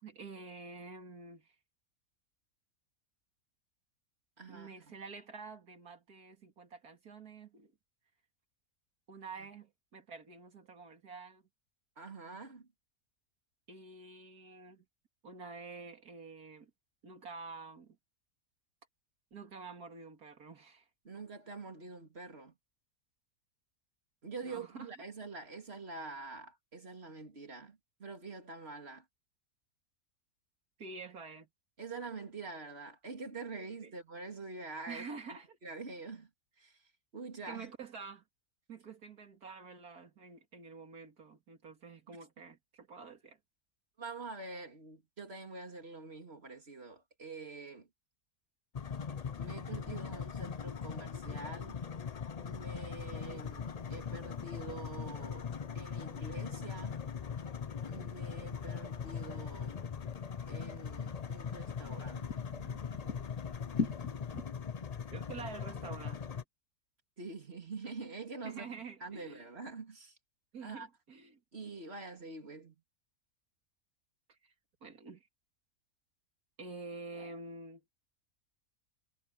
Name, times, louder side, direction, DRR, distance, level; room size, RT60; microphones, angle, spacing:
voice 1, 0.0-1.5 4.5-7.7 9.1-11.4 13.7-14.8 15.2-16.7 17.0-18.0 19.3-20.9 24.4-24.9 30.8-31.5 33.8-33.9 34.9-35.6 37.5-38.2 38.7-43.4 65.1-66.4 68.4-69.5 70.5-71.4 74.3-74.5 74.8-75.3 76.6-77.8, right 4 dB, 85° right, 2.9 m, -48 dB
voice 2, 4.4-5.0 9.4-9.5 12.0-12.7 21.0-22.5 24.2-29.0 31.8-35.1 35.6-36.3 36.6-37.7 42.1-42.2 44.0-47.9 49.4-51.8 52.4-55.5 55.7-57.0 57.9-59.9 60.5-62.5 67.2-70.2 70.6-70.9 71.5-72.7, right 3 dB, 45° right, 3.2 m, -46 dB
sound 1, 48.7-66.4, left 6 dB, 50° left, 0.4 m, -40 dB
sound 2, 52.9-64.5, left 4 dB, 70° left, 3.1 m, -46 dB
omnidirectional pair, 1.6 m